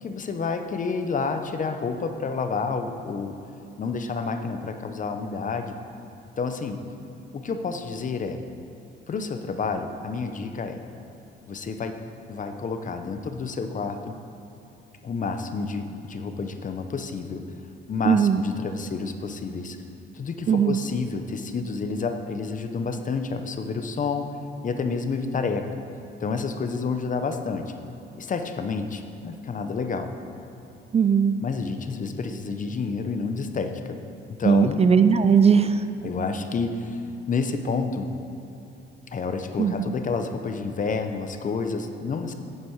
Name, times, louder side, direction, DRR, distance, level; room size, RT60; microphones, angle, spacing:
voice 1, 0.0-3.3 3.8-5.7 6.4-6.8 7.3-8.4 9.1-10.8 11.5-12.0 12.3-14.2 15.0-17.4 17.9-19.8 20.1-24.3 24.6-25.8 26.2-27.7 28.2-30.1 31.4-34.0 34.4-34.8 36.0-38.1 39.1-42.3, left 4 dB, 40° left, 7 dB, 0.8 m, -29 dB
voice 2, 18.1-18.4 20.5-20.8 30.9-31.4 34.4-35.8 39.6-39.9, right 7 dB, 30° right, 10 dB, 0.4 m, -19 dB
10.0 x 8.1 x 4.7 m, 2.9 s
cardioid pair, 90°, 20 cm